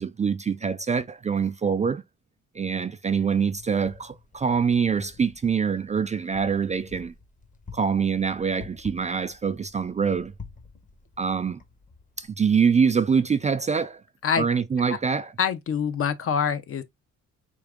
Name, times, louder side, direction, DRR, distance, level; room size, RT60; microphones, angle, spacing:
voice 1, 0.0-2.0 2.5-7.1 7.7-10.3 11.2-11.6 12.2-14.0 14.4-15.3, right 6 dB, 25° right, 0.4 m, -24 dB
Wind, 3.3-12.3, left 5 dB, 25° left, 1.0 m, -48 dB
voice 2, 15.4-16.8, left 7 dB, 50° left, 0.7 m, -25 dB
4.5 x 2.5 x 3.6 m
cardioid pair, 90°, 30 cm